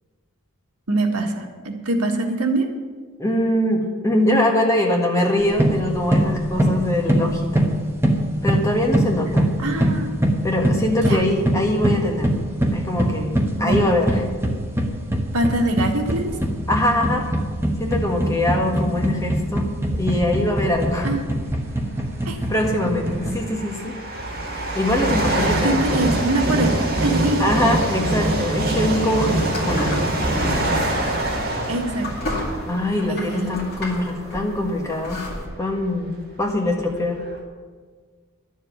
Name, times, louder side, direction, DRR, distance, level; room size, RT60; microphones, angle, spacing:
voice 1, 0.9-2.7 9.6-10.2 11.0-11.2 13.6-13.8 15.3-16.4 21.0-21.2 22.2-22.4 25.6-27.5 31.7-32.1 33.1-33.6, right 2 dB, 90° right, 3 dB, 1.7 m, -23 dB
voice 2, 3.2-7.7 8.4-9.5 10.4-12.3 12.7-14.2 16.7-17.3 17.8-19.7 20.0-21.1 22.5-23.9 24.7-25.8 27.4-30.1 32.6-35.2 35.6-37.2, left 1 dB, 15° left, 0 dB, 1.6 m, -22 dB
sound 1, 5.4-23.4, right 1 dB, 10° right, 1.1 m, -23 dB
sound 2, 20.3-20.6 21.7-21.8 22.5-33.9 34.6-34.7 35.5-35.6 35.8-37.4, right 1 dB, 40° right, 2.3 m, -24 dB
sound 3, 29.4-35.5, left 1 dB, 45° left, 2.4 m, -33 dB
11.5 x 7.3 x 9.4 m, 1.5 s
head